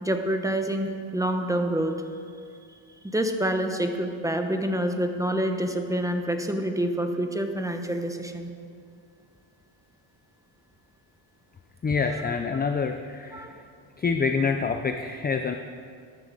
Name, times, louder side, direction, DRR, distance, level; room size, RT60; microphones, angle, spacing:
voice 1, 0.0-1.9 3.0-8.5 12.1-12.3 13.3-13.6, right 1 dB, 5° right, 5 dB, 0.9 m, -27 dB
voice 2, 11.8-13.5 14.0-15.5, left 5 dB, 20° left, 6 dB, 0.4 m, -26 dB
14.0 x 12.5 x 4.0 m, 2.3 s
cardioid pair, 120°, 50 cm